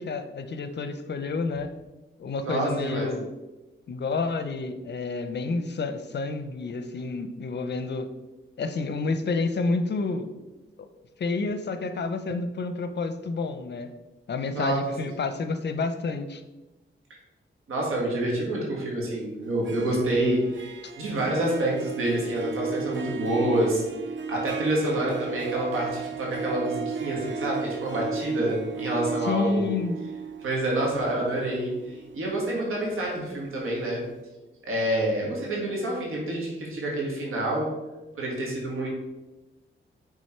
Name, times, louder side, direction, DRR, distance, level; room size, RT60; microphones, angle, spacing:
voice 1, 0.0-1.7 2.2-3.3 3.9-8.1 8.6-10.3 10.8-10.9 11.2-13.9 14.3-16.4 20.8-20.9 29.2-30.0, left 3 dB, 55° left, 9 dB, 0.7 m, -29 dB
voice 2, 2.4-3.1 14.5-15.1 17.7-23.8 24.3-29.7 30.4-34.0 34.6-37.7 38.2-38.9, right 1 dB, 85° right, -3 dB, 1.9 m, -27 dB
Harp, 19.5-33.4, right 6 dB, 65° right, 0.6 m, -35 dB
6.3 x 3.8 x 4.4 m, 1.1 s
cardioid pair, 70°, 21 cm